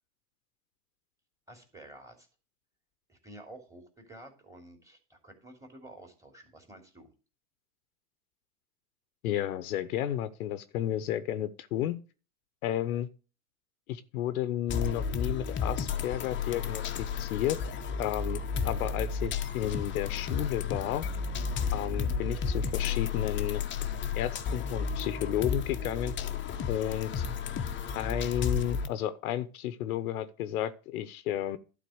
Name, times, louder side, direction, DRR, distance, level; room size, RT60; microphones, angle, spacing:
voice 1, 1.5-2.3 3.1-7.1, right 1 dB, 5° right, 3.0 m, -51 dB
voice 2, 9.2-12.0 12.6-13.1 13.9-17.6 18.0-21.1 21.7-23.7 24.1-26.1 26.7-27.2 27.9-31.6, left 11 dB, 70° left, 1.0 m, -32 dB
sound 1, 14.7-28.9, left 6 dB, 25° left, 1.0 m, -32 dB
11.5 x 4.2 x 7.8 m
hypercardioid pair, 105°, 46 cm